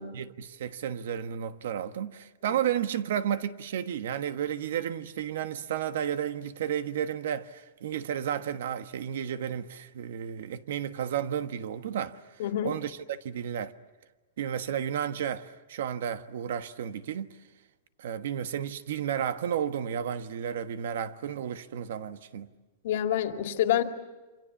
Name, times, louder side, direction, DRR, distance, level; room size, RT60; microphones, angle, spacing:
voice 1, 0.1-12.2 12.6-13.7 14.4-17.3 18.0-22.5, right 9 dB, 70° right, 1.3 m, -32 dB
voice 2, 12.4-12.7 22.8-23.8, left 11 dB, 60° left, 2.3 m, -27 dB
28.0 x 26.0 x 7.2 m
supercardioid pair, 165°, 0 cm